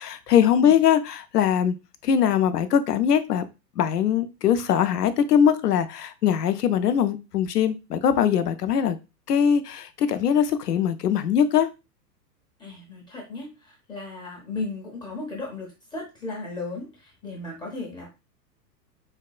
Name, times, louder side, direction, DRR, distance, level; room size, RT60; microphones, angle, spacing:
voice 1, 0.0-1.7 2.0-3.4 3.8-9.0 9.3-11.7, left 8 dB, 70° left, 0.6 m, -21 dB
voice 2, 12.6-18.1, left 3 dB, 10° left, 0.6 m, -35 dB
4.0 x 2.2 x 2.3 m
figure-of-eight pair, 100°, 50 cm